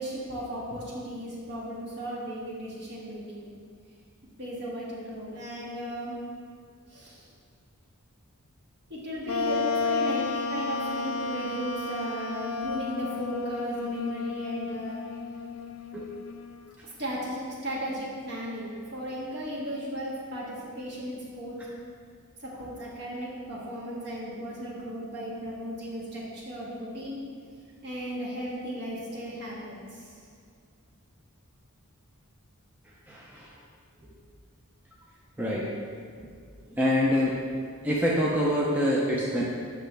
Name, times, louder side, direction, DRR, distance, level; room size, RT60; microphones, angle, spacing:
voice 1, 0.0-3.4 4.4-6.2 6.9-7.2 8.9-15.0 16.8-21.6 22.4-27.2 27.8-29.7, equal, 50° right, -6 dB, 1.7 m, -35 dB
Wind instrument woodwind instrument, 9.3-16.7, left 4 dB, 65° left, 0.4 m, -32 dB
voice 2, 33.1-33.5 35.4-35.7 36.2-36.3 36.7-37.4 37.8-39.4, equal, 10° right, -5 dB, 0.6 m, -26 dB
7.9 x 5.8 x 3.3 m, 2.2 s
head